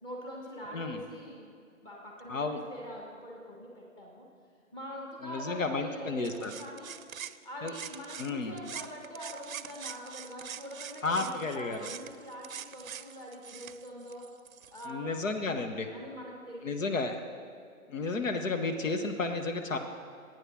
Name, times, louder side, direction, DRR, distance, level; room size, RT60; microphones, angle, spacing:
voice 1, 0.0-4.3 4.7-7.0 7.4-14.3 14.7-15.1 15.9-16.9, equal, 10° left, -2 dB, 1.3 m, -44 dB
voice 2, 2.3-2.6 5.2-6.5 7.6-7.7 8.2-8.6 11.0-11.8 14.9-15.9 16.6-17.2 17.9-19.8, left 3 dB, 65° left, 5 dB, 1.1 m, -32 dB
sound 1, 6.2-8.3 8.6-14.9, right 8 dB, 70° right, 0.6 m, -44 dB
11.0 x 9.1 x 6.1 m, 2.2 s
figure-of-eight pair, 140°, 42 cm